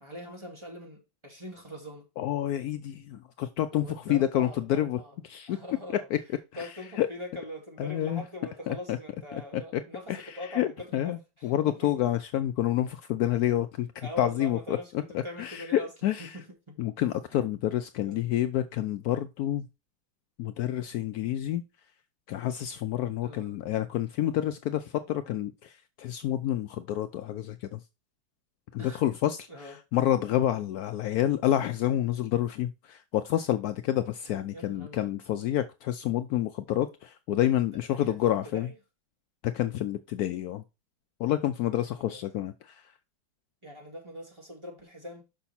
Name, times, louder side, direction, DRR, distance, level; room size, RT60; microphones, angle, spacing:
voice 1, 0.0-2.1 3.7-5.2 5.5-6.1 6.5-11.9 14.0-15.9 16.2-16.8 17.3-17.5 18.0-18.3 23.2-23.5 28.8-29.0 29.5-29.8 34.5-35.1 37.9-38.8 41.7-42.2 43.6-45.2, left 1 dB, 15° right, 2.2 m, -43 dB
voice 2, 2.2-5.0 5.3-5.6 6.1-6.2 6.6-6.7 7.0-7.1 7.8-8.2 8.7-9.0 9.3-9.8 10.1-16.4 16.8-19.7 20.4-21.6 22.3-27.8 28.7-38.7 39.4-40.6 41.2-42.8, left 12 dB, 85° left, 0.8 m, -29 dB
6.2 x 5.7 x 4.2 m
omnidirectional pair, 2.1 m